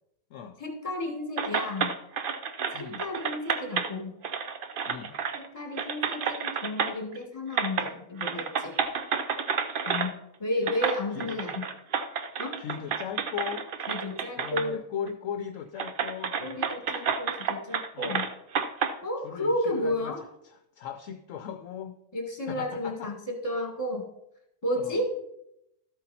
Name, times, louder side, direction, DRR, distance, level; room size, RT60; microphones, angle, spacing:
voice 1, 0.6-1.9 2.8-4.1 5.4-8.7 9.9-10.1 10.4-11.7 12.4-12.6 13.9-14.8 16.4-18.2 19.0-20.2 22.1-24.1 24.6-25.1, left 1 dB, 25° left, 3 dB, 1.9 m, -32 dB
sound 1, 1.4-3.9 4.2-5.5 5.8-7.2 7.5-7.9 8.2-10.1 10.7-14.7 15.1-15.2 15.8-18.9, right 6 dB, 50° right, 0.7 m, -30 dB
voice 2, 2.7-3.0 4.9-5.2 11.1-11.4 12.6-13.7 14.4-16.4 17.9-18.3 19.2-20.2 20.4-22.0 22.4-23.1 24.8-25.0, left 8 dB, 70° left, 8 dB, 1.0 m, -38 dB
12.5 x 8.2 x 4.2 m, 0.81 s
omnidirectional pair, 1.5 m